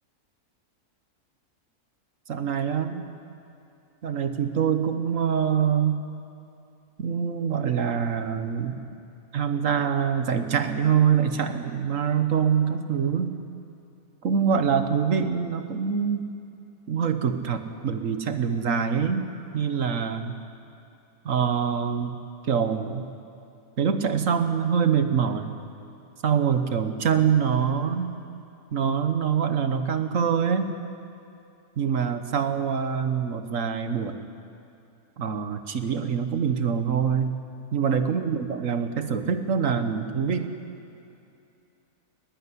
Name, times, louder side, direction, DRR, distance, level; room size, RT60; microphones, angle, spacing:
voice 1, 2.3-3.0 4.0-6.0 7.0-8.8 9.3-13.4 14.2-16.2 16.9-19.3 19.5-20.4 21.2-22.2 22.4-23.1 23.8-25.6 26.2-28.1 28.7-30.8 31.8-34.1 35.2-37.3 37.7-40.5, right 7 dB, 55° right, 8 dB, 1.5 m, -25 dB
20.0 x 16.0 x 9.9 m, 2.7 s
omnidirectional pair, 1.7 m